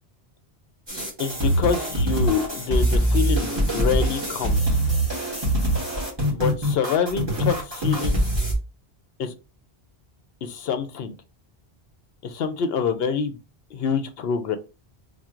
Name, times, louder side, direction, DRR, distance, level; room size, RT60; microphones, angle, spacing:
sound 1, 0.9-8.5, right 1 dB, 25° right, 1.9 m, -23 dB
voice 1, 1.2-4.8 6.3-8.2 9.2-9.3 10.4-11.2 12.2-13.4 13.7-14.6, left 6 dB, 70° left, 9 dB, 0.8 m, -26 dB
3.6 x 2.2 x 4.4 m, 0.30 s
omnidirectional pair, 1.1 m